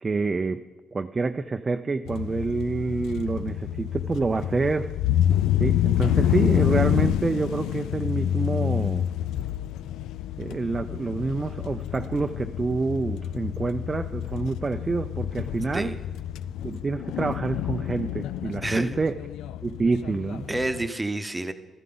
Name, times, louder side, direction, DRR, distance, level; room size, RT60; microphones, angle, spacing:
voice 1, 0.0-0.6 0.9-4.9 5.6-9.1 10.4-15.9 16.6-19.2 19.6-20.5, right 3 dB, 30° right, 7 dB, 0.4 m, -27 dB
sound 1, 2.1-20.9, left 11 dB, 85° left, 0.3 m, -28 dB
voice 2, 18.6-19.0 20.5-21.5, right 2 dB, 15° right, 9 dB, 0.8 m, -29 dB
13.5 x 13.0 x 3.9 m, 1.3 s
cardioid pair, 90°, 0 cm